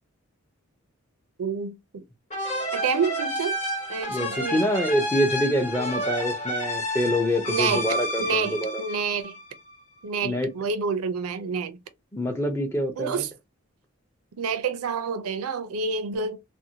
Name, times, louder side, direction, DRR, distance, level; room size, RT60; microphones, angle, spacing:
voice 1, 1.4-2.0 2.7-3.5 3.9-4.6 7.5-9.4 10.0-11.8 13.0-13.3 14.4-16.4, right 5 dB, 85° right, 0.5 m, -28 dB
sound 1, 2.3-9.7, equal, 35° left, 1.0 m, -30 dB
voice 2, 4.1-8.8 10.2-10.5 12.1-13.2, equal, 10° left, 0.6 m, -26 dB
2.6 x 2.1 x 2.8 m
head